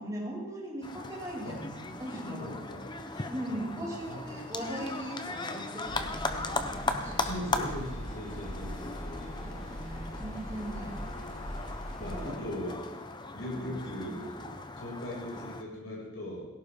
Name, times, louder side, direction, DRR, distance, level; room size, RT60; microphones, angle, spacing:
voice 1, 0.0-2.6 3.3-7.7 9.4-11.2 12.1-12.4 13.5-14.0, right 1 dB, 15° right, -7 dB, 5.2 m, -39 dB
sound 1, 0.8-15.6, left 3 dB, 20° left, 0.8 m, -38 dB
voice 2, 2.2-4.4 7.2-9.9 12.0-12.8 13.3-16.5, left 1 dB, 80° left, -5 dB, 6.3 m, -40 dB
sound 2, 5.8-12.3, equal, ahead, 5.7 m, -41 dB
19.0 x 16.5 x 3.7 m, 1.0 s
head